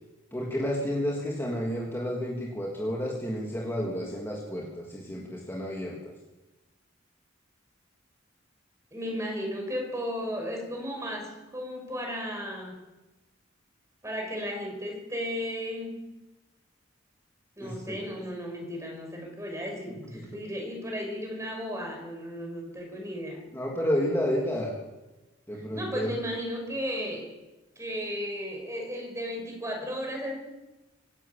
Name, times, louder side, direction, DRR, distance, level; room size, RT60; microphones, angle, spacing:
voice 1, 0.3-6.1 17.6-18.1 23.5-24.7 25.5-26.1, equal, 10° left, -3 dB, 3.1 m, -31 dB
voice 2, 8.9-12.8 14.0-16.0 17.6-23.4 25.5-27.4 27.8-30.3, equal, 15° right, 2 dB, 5.8 m, -35 dB
25.0 x 12.0 x 8.8 m, 1.1 s
head